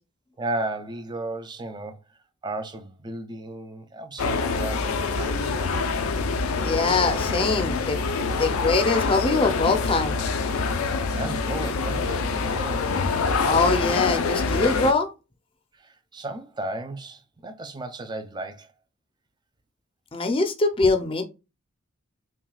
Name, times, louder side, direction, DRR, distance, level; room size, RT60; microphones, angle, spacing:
voice 1, 0.4-2.2 2.4-5.8 10.8-13.0 15.7-18.7, right 2 dB, 20° right, 0.4 m, -35 dB
sound 1, 4.2-14.9, left 4 dB, 85° left, 0.5 m, -25 dB
voice 2, 6.6-8.0 8.3-10.2 13.5-15.1 20.1-21.2, left 3 dB, 25° left, 0.6 m, -23 dB
5.9 x 2.3 x 2.3 m
head